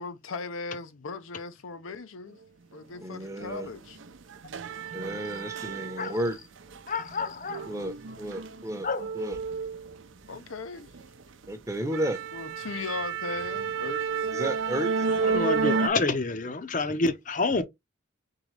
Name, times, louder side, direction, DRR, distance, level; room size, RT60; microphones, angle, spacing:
voice 1, 0.0-2.4 2.7-4.0 10.3-10.9 12.3-14.3, left 4 dB, 85° left, 0.6 m, -38 dB
voice 2, 3.0-3.7 4.9-6.4 7.7-8.9 9.1-9.4 11.5-12.2 14.3-15.7, right 1 dB, 15° right, 0.8 m, -33 dB
sound 1, 3.4-3.5 3.9-6.3 6.6-10.4 10.8-11.1 11.4-11.5 11.9-15.9, right 5 dB, 70° right, 0.5 m, -31 dB
voice 3, 6.9-7.7 8.8-9.1 15.2-17.6, left 3 dB, 40° left, 0.6 m, -28 dB
3.9 x 3.8 x 3.2 m
head